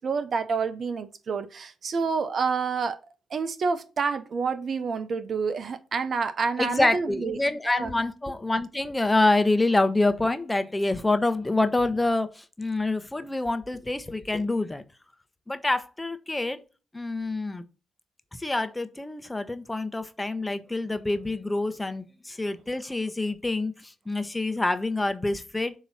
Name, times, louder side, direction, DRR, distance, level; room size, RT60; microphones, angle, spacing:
voice 1, 0.0-3.0 3.3-7.4 7.7-7.9, right 5 dB, 55° right, 0.8 m, -28 dB
voice 2, 6.6-14.8 15.5-16.6 16.9-17.6 18.4-25.7, left 2 dB, 20° left, 0.9 m, -26 dB
7.0 x 3.0 x 5.5 m
supercardioid pair, 50°, 0 cm